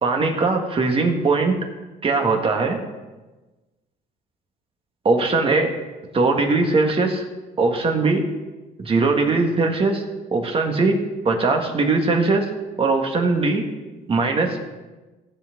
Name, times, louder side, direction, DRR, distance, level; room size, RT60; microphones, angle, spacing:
voice 1, 0.0-1.6 2.0-2.8 5.0-5.7 6.1-7.2 7.6-8.2 8.8-10.0 10.3-11.0 11.3-12.5 12.8-13.6 14.1-14.6, right 3 dB, 35° right, 3 dB, 1.8 m, -20 dB
17.0 x 7.6 x 3.9 m, 1.2 s
cardioid pair, 110°, 17 cm